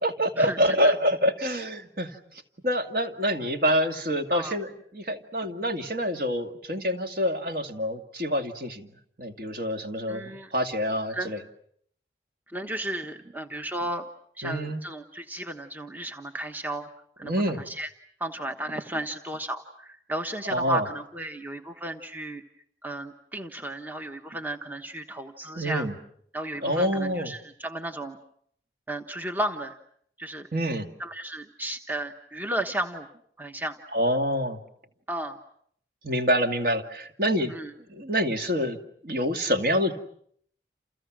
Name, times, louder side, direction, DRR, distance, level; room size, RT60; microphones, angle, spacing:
voice 1, 0.0-2.1 2.6-8.9 9.2-11.4 14.4-14.8 17.2-17.6 20.4-20.9 25.6-25.9 26.6-27.3 30.5-30.9 33.9-34.6 36.0-37.5 37.9-38.8 39.0-39.9, equal, 50° right, 5 dB, 2.4 m, -26 dB
voice 2, 10.1-10.5 11.1-11.3 12.5-14.0 14.4-16.9 17.2-17.3 17.7-17.9 18.2-22.4 22.8-25.9 26.3-28.2 28.9-29.8 30.2-30.5 31.0-33.1 33.4-33.8 35.1-35.4 37.5-37.7, right 1 dB, 10° right, 5 dB, 1.2 m, -33 dB
29.5 x 29.5 x 6.3 m, 0.66 s
head